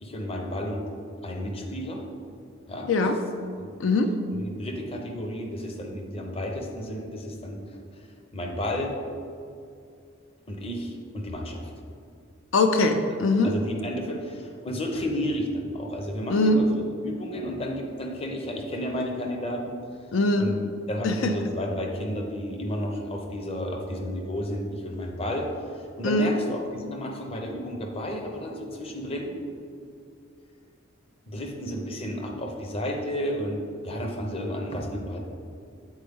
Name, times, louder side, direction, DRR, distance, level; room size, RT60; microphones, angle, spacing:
voice 1, 0.0-0.8 1.2-2.0 2.7-2.9 4.4-7.6 7.9-8.0 8.3-8.9 10.5-11.7 13.4-16.8 17.0-19.8 20.4-20.5 20.9-25.5 25.7-29.4 31.3-35.2, equal, 30° left, 2 dB, 0.6 m, -32 dB
voice 2, 3.8-4.1 12.5-13.5 16.3-16.6 20.1-20.5 21.0-21.3 26.0-26.4, left 2 dB, 75° left, 6 dB, 0.4 m, -22 dB
8.0 x 4.2 x 3.5 m, 2.4 s
head